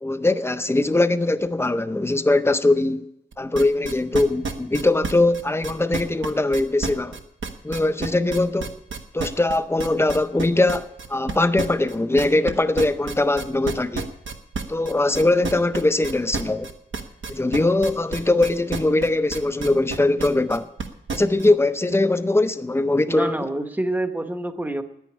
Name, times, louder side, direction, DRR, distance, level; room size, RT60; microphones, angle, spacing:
voice 1, 0.0-3.0 3.4-7.2 7.6-8.7 9.1-14.1 14.7-16.7 17.3-20.7 21.1-23.5, left 2 dB, 15° left, 0.6 m, -21 dB
sound 1, 3.3-21.5, right 4 dB, 80° right, 1.2 m, -30 dB
voice 2, 23.1-24.8, right 1 dB, 10° right, 0.9 m, -27 dB
10.0 x 9.2 x 9.8 m
wide cardioid pair, 155°, 20 cm